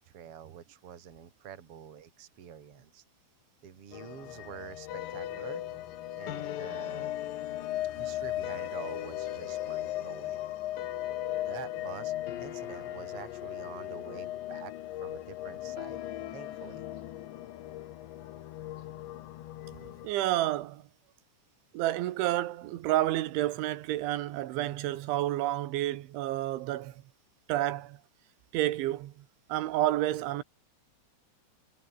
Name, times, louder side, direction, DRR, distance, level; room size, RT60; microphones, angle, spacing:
voice 1, 0.0-3.0 3.6-5.6 6.2-7.1 8.0-10.4 11.4-12.1 12.4-14.7 15.0-16.0 16.3-16.8, right 9 dB, 40° right, 2.8 m, -47 dB
sound 1, 3.9-20.1, left 14 dB, 75° left, 3.7 m, -38 dB
sound 2, 4.9-19.4, left 11 dB, 60° left, 2.8 m, -44 dB
voice 2, 20.0-20.8 21.7-27.0 27.5-28.0 28.5-29.1 29.5-30.4, right 15 dB, 90° right, 3.8 m, -30 dB
omnidirectional pair, 5.2 m